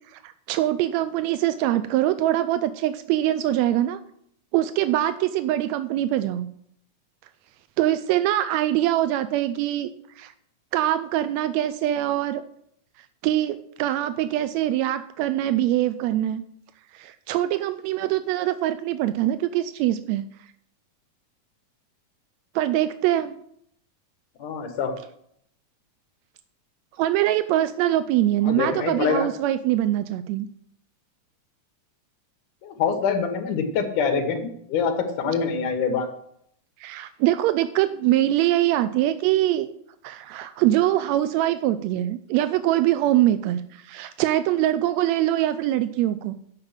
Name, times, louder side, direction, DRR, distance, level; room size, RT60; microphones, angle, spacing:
voice 1, 0.1-4.0 4.5-6.5 7.8-9.9 10.2-10.3 10.7-12.4 13.2-16.4 16.9-20.2 22.5-23.4 27.0-30.5 36.8-39.7 40.0-46.3, right 13 dB, 85° right, 11 dB, 1.6 m, -23 dB
voice 2, 24.4-24.9 28.4-29.3 32.6-36.1, left 5 dB, 75° left, 4 dB, 2.8 m, -25 dB
8.8 x 5.9 x 7.2 m, 0.69 s
omnidirectional pair, 3.7 m